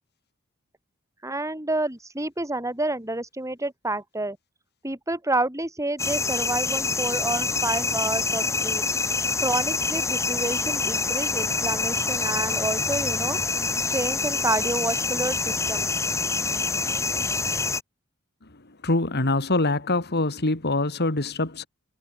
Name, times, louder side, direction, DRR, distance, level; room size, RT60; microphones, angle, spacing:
voice 1, 1.2-4.4 4.8-8.8 9.4-13.4 13.9-15.9, right 2 dB, 15° right, 7.1 m, -29 dB
sound 1, 6.0-17.8, left 4 dB, 15° left, 0.7 m, -26 dB
voice 2, 18.8-21.7, left 2 dB, 50° left, 2.6 m, -24 dB
head